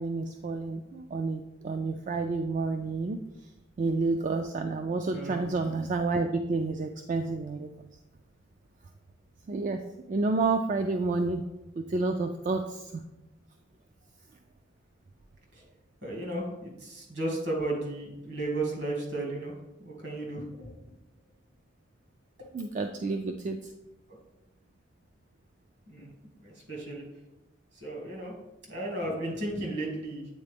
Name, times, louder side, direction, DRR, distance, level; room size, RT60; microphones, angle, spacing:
voice 1, 0.0-3.2 3.8-7.7 9.5-9.8 10.1-11.4 11.8-13.0 22.5-23.6, right 3 dB, 40° right, 6 dB, 0.3 m, -29 dB
voice 2, 16.0-19.5 19.8-20.8 25.9-26.1 26.4-27.0 27.8-28.3 28.7-30.3, right 2 dB, 60° right, -2 dB, 1.9 m, -34 dB
8.4 x 4.0 x 3.4 m, 0.96 s
head